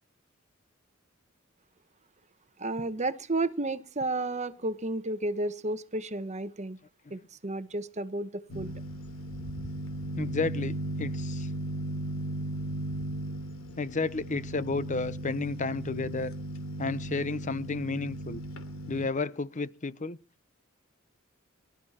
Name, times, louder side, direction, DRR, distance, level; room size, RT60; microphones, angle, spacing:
voice 1, 2.6-6.8 7.1-8.7, right 2 dB, 35° right, 1.1 m, -32 dB
sound 1, 8.5-19.1, right 1 dB, 90° left, 3.2 m, -36 dB
voice 2, 10.2-11.5 13.8-16.3 16.8-18.4 18.9-20.2, left 3 dB, 40° left, 0.8 m, -32 dB
23.5 x 13.0 x 4.3 m
head